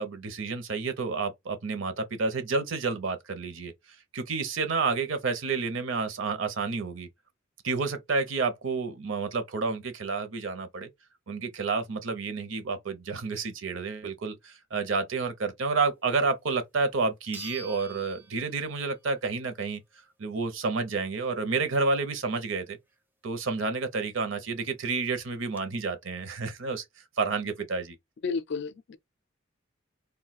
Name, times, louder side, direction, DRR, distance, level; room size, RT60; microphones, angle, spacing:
voice 1, 0.0-3.7 4.1-7.1 7.6-10.9 11.3-19.8 20.2-22.8 23.2-26.8 27.2-28.0, right 4 dB, 65° right, 0.6 m, -30 dB
sound 1, 16.5-16.6 17.3-19.1 19.5-19.6 24.2-24.3 24.5-24.6 25.2-25.6, right 2 dB, 10° right, 0.4 m, -46 dB
voice 2, 28.2-29.0, left 5 dB, 55° left, 0.4 m, -32 dB
2.4 x 2.2 x 4.0 m
head